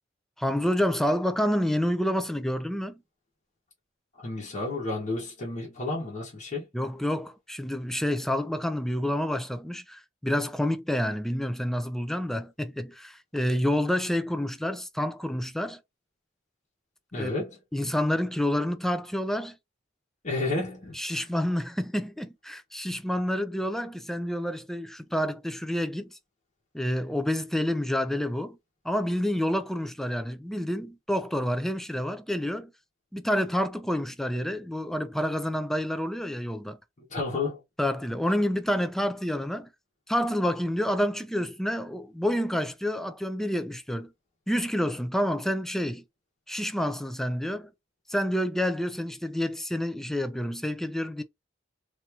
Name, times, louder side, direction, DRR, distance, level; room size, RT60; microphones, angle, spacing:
voice 1, 0.4-2.9 6.7-15.8 17.1-17.4 17.7-19.6 20.9-26.2 26.7-28.6 28.8-32.7 33.1-36.8 37.8-39.7 40.1-44.1 44.5-46.0 46.5-47.7 48.1-51.2, equal, ahead, 0.4 m, -28 dB
voice 2, 4.2-6.7 17.1-17.6 20.2-21.2 37.1-37.6, left 2 dB, 40° left, 1.2 m, -31 dB
3.5 x 2.8 x 2.8 m
head